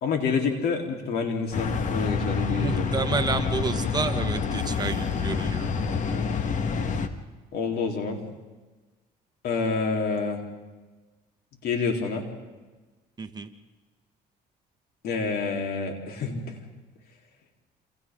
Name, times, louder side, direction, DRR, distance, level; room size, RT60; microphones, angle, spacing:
voice 1, 0.0-2.9 5.8-6.3 7.5-8.2 9.4-10.4 11.6-12.3 15.0-16.5, left 4 dB, 70° left, 2 dB, 3.9 m, -28 dB
sound 1, 1.5-7.1, left 5 dB, 45° left, 1.7 m, -27 dB
voice 2, 2.4-5.7 13.2-13.5, right 4 dB, 25° right, 6 dB, 1.5 m, -30 dB
28.0 x 28.0 x 3.8 m, 1.3 s
cardioid pair, 110°, 17 cm